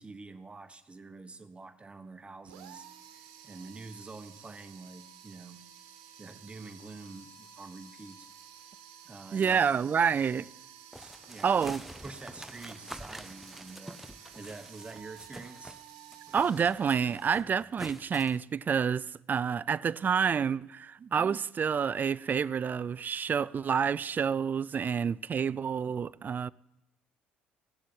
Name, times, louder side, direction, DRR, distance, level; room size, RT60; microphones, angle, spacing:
voice 1, 0.0-5.6 6.2-8.3 9.0-9.6 10.4-10.5 10.9-15.8, right 3 dB, 20° right, 1.3 m, -47 dB
sound 1, 2.5-17.3, right 9 dB, 80° right, 1.3 m, -52 dB
voice 2, 9.3-10.5 11.4-11.8 16.3-26.5, right 7 dB, 40° right, 0.4 m, -28 dB
sound 2, 10.9-15.8 16.1-18.4, right 1 dB, 5° right, 0.9 m, -47 dB
16.0 x 7.5 x 8.7 m
hypercardioid pair, 60°, 5 cm